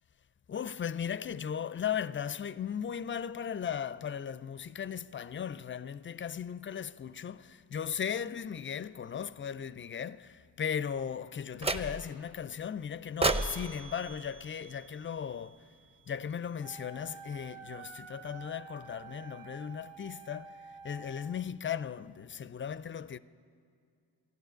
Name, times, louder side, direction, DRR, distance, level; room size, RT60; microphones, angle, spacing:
voice 1, 0.5-15.7 16.1-23.2, left 8 dB, 30° left, 0.4 m, -37 dB
sound 1, 11.6-12.3 13.2-15.4, right 2 dB, 15° right, 0.7 m, -34 dB
Wind instrument woodwind instrument, 16.6-21.4, right 6 dB, 90° right, 0.7 m, -49 dB
12.5 x 11.0 x 9.0 m
cardioid pair, 60°, 42 cm